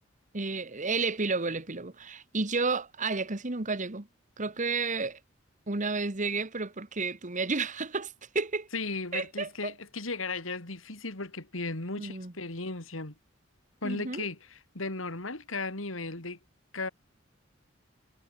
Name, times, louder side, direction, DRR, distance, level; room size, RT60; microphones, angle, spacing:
voice 1, 0.3-4.1 4.4-5.2 5.7-8.7 9.1-9.7 12.0-12.3 13.8-14.3, right 4 dB, 40° right, 1.6 m, -31 dB
voice 2, 8.7-13.1 13.8-16.4 16.7-16.9, left 3 dB, 80° left, 3.2 m, -36 dB
head